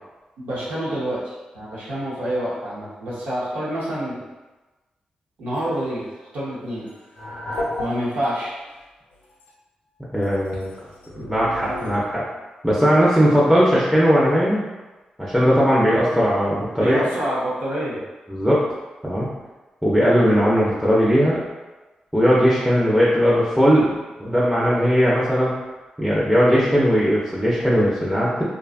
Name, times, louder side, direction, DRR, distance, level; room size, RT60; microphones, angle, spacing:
voice 1, 0.4-4.2 5.4-6.0 6.3-6.9 7.8-8.5 16.8-18.0, right 1 dB, 85° right, -7 dB, 0.8 m, -27 dB
sound 1, 5.5-5.8 6.9-8.3 8.7-8.8 9.2-9.5 10.2-12.0, left 1 dB, 85° left, 0.5 m, -33 dB
voice 2, 10.1-10.7 11.2-12.2 12.6-14.6 15.2-17.0 18.3-18.6 19.0-19.3 19.8-21.4 22.1-23.9 24.2-25.5 26.0-28.4, equal, ahead, -7 dB, 0.6 m, -18 dB
2.6 x 2.3 x 2.5 m, 1.2 s
supercardioid pair, 45°, 3 cm